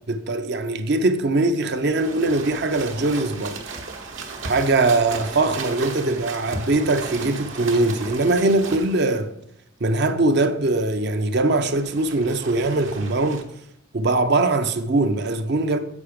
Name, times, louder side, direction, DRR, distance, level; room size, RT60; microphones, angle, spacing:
voice 1, 0.1-3.6 4.4-9.3 9.8-13.5 13.9-15.8, right 2 dB, 55° right, 0.6 m, -21 dB
sound 1, 1.7-9.2 11.5-13.4, right 3 dB, 70° right, 1.1 m, -35 dB
7.7 x 6.1 x 5.1 m
head